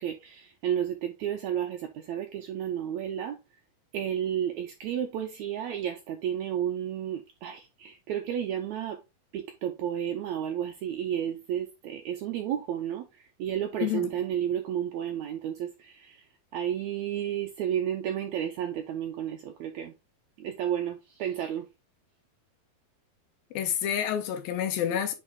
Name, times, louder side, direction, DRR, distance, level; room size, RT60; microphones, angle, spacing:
voice 1, 0.0-3.4 3.9-9.0 9.3-13.0 13.4-16.1 16.5-19.9 20.4-21.7, right 10 dB, 90° right, 1.6 m, -32 dB
voice 2, 13.8-14.1 23.5-25.1, left 9 dB, 85° left, 2.8 m, -28 dB
8.0 x 3.2 x 3.7 m
omnidirectional pair, 4.1 m